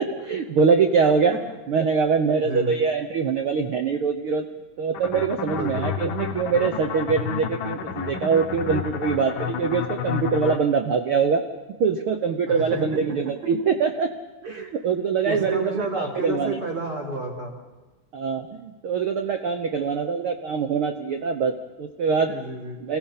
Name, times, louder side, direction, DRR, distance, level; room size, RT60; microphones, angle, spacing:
voice 1, 0.0-1.3 1.7-4.4 4.8-11.4 11.8-14.1 14.4-16.6 18.1-22.3 22.8-23.0, right 5 dB, 70° right, 6 dB, 1.2 m, -23 dB
voice 2, 2.4-2.8 5.5-5.9 12.5-13.0 14.4-14.7 15.2-17.6 22.2-22.8, right 2 dB, 40° right, -2 dB, 4.7 m, -31 dB
sound 1, 4.9-10.6, left 7 dB, 80° left, 1.0 m, -30 dB
28.5 x 16.5 x 5.7 m, 1.2 s
omnidirectional pair, 3.7 m